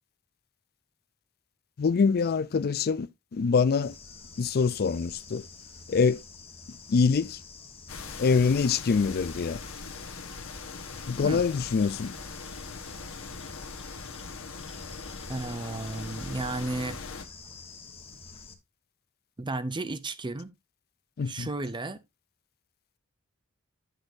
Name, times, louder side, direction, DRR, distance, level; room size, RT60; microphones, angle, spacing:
voice 1, 1.8-3.9 4.4-5.5 5.9-6.2 6.9-7.4 8.2-9.6 11.1-12.1 21.2-21.5, left 5 dB, 45° left, 0.4 m, -25 dB
Bird / Insect, 3.8-18.5, left 4 dB, 25° left, 1.2 m, -48 dB
sound 1, 7.9-17.2, left 4 dB, 65° left, 1.3 m, -41 dB
voice 2, 15.3-17.0 19.4-20.5 21.3-22.0, right 2 dB, 20° right, 0.6 m, -33 dB
9.7 x 6.5 x 2.6 m
head